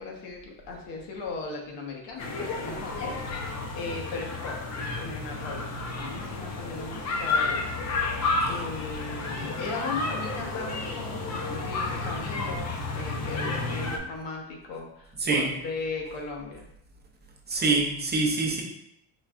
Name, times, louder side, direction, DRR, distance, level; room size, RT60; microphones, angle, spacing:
voice 1, 0.0-4.6 4.9-7.7 8.5-16.7, left 3 dB, 80° left, 0 dB, 1.1 m, -38 dB
sound 1, 2.2-14.0, left 3 dB, 40° left, 0.6 m, -31 dB
voice 2, 17.5-18.6, right 3 dB, 25° right, 0 dB, 0.5 m, -25 dB
4.4 x 3.2 x 2.4 m, 0.75 s
cardioid pair, 120°, 43 cm